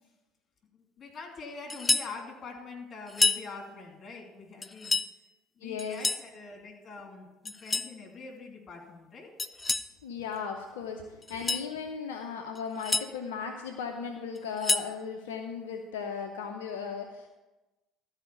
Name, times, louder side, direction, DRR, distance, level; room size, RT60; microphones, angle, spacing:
voice 1, 0.7-4.9 5.6-9.3, left 4 dB, 45° left, 2 dB, 2.8 m, -44 dB
sound 1, 1.7-2.1 3.1-3.5 4.6-5.1 5.8-6.3 7.5-7.9 9.4-9.9 11.2-11.7 12.6-13.1 14.4-14.9, left 3 dB, 25° left, 0.4 m, -29 dB
voice 2, 5.6-6.0 10.0-17.3, left 6 dB, 80° left, 3 dB, 0.7 m, -36 dB
13.0 x 4.9 x 6.9 m, 1.1 s
hypercardioid pair, 60°, 0 cm